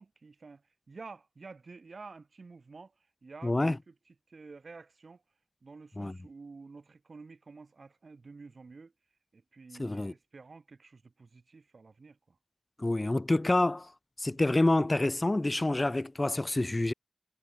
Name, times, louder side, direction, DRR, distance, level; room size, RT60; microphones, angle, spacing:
voice 1, 0.0-2.9 3.2-5.2 5.6-8.9 9.3-12.4 14.3-14.4, right 4 dB, 80° right, 5.8 m, -50 dB
voice 2, 3.4-3.8 6.0-6.1 9.8-10.1 12.8-13.9 14.2-16.9, left 2 dB, 35° left, 0.6 m, -27 dB
wide cardioid pair, 65°, 0 cm